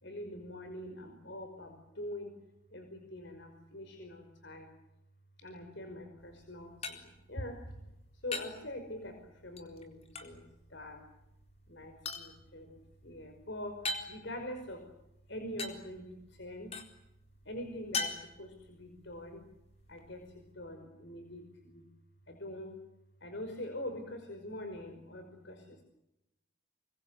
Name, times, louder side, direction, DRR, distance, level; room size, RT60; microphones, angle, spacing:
voice 1, 0.0-2.4 2.7-4.7 5.4-10.4 10.7-11.1 11.7-14.8 15.3-16.8 17.5-19.4 19.9-21.8 22.3-22.8 23.2-25.8, left 1 dB, 55° left, 5 dB, 5.3 m, -44 dB
sound 1, 6.2-20.5, left 3 dB, 30° left, 4.0 m, -45 dB
29.0 x 24.0 x 8.2 m, 0.86 s
head